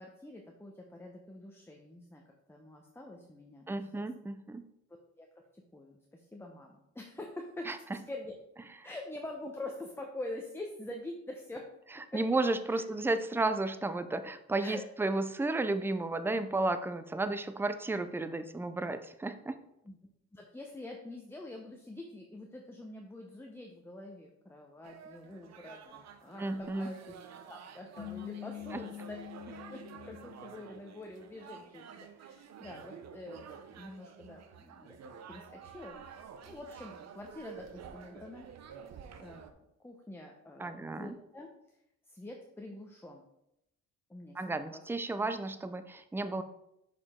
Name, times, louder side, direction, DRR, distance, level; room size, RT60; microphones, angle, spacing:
voice 1, 0.0-2.2 2.5-4.0 5.2-5.3 5.5-8.3 8.8-11.7 12.1-12.2 12.7-12.8 14.6-14.8 19.8-20.0 20.3-27.1 27.5-29.2 29.5-38.5 39.2-39.5 39.8-41.5 42.1-43.2 44.1-44.8, left 2 dB, 10° left, 1 dB, 0.8 m, -46 dB
voice 2, 3.7-4.6 7.7-7.8 12.1-19.6 26.4-26.9 40.6-41.1 44.4-46.4, right 2 dB, 10° right, 11 dB, 0.4 m, -33 dB
sound 1, 24.8-39.5, right 7 dB, 60° right, 0.7 m, -50 dB
sound 2, 28.0-31.3, left 12 dB, 35° left, 0.9 m, -46 dB
6.6 x 5.1 x 3.6 m, 0.82 s
cardioid pair, 90°, 30 cm